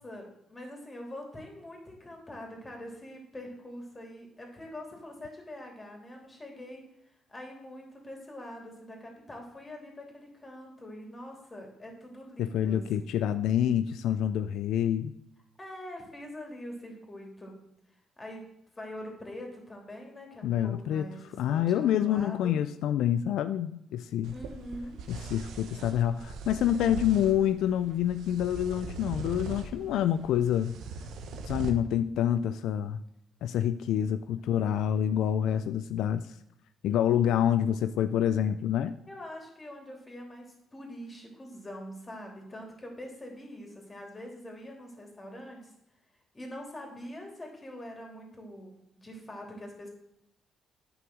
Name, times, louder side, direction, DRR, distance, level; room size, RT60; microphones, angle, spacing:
voice 1, 0.0-6.8 7.3-13.2 15.6-17.5 18.2-18.4 18.7-22.5 24.3-25.0 39.1-40.5 40.7-45.7 46.3-49.9, left 1 dB, 25° left, 1 dB, 3.3 m, -44 dB
voice 2, 12.4-15.1 20.4-21.1 21.4-24.3 25.1-30.8 31.4-33.0 33.4-36.4 36.8-39.0, left 10 dB, 85° left, 11 dB, 0.4 m, -27 dB
sound 1, 24.2-31.7, right 4 dB, 80° right, 1.1 m, -41 dB
9.6 x 5.9 x 6.2 m, 0.80 s
cardioid pair, 90°, 0 cm